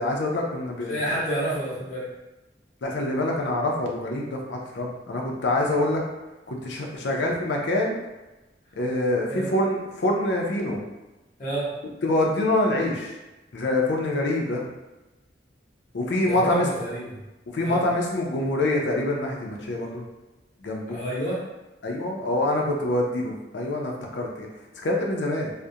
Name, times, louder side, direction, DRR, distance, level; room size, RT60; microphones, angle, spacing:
voice 1, 0.0-1.0 2.8-6.0 6.5-7.9 8.8-10.8 12.0-13.1 13.5-14.7 15.9-16.7 17.5-20.0 20.6-21.0 21.8-24.5 24.8-25.5, left 1 dB, 70° left, 0 dB, 0.5 m, -25 dB
voice 2, 0.9-2.1 9.3-9.5 11.4-11.7 16.3-17.2 17.6-17.8 20.9-21.4, right 1 dB, 40° left, -7 dB, 0.8 m, -29 dB
2.3 x 2.1 x 2.7 m, 1.1 s
head